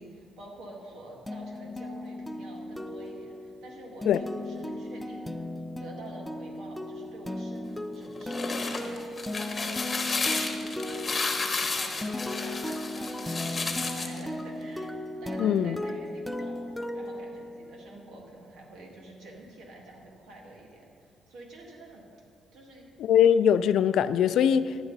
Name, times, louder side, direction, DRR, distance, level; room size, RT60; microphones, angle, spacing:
voice 1, 0.0-5.3 5.8-9.0 9.5-22.1 22.5-22.9, right 2 dB, 80° right, -1 dB, 2.0 m, -48 dB
sound 1, 1.3-17.9, left 1 dB, 5° left, 0.5 m, -36 dB
sound 2, 8.1-14.2, left 3 dB, 30° left, 1.2 m, -32 dB
voice 2, 15.4-15.8 23.0-24.8, left 9 dB, 75° left, 14 dB, 0.3 m, -22 dB
11.0 x 9.7 x 4.0 m, 2.3 s
cardioid pair, 90°, 0 cm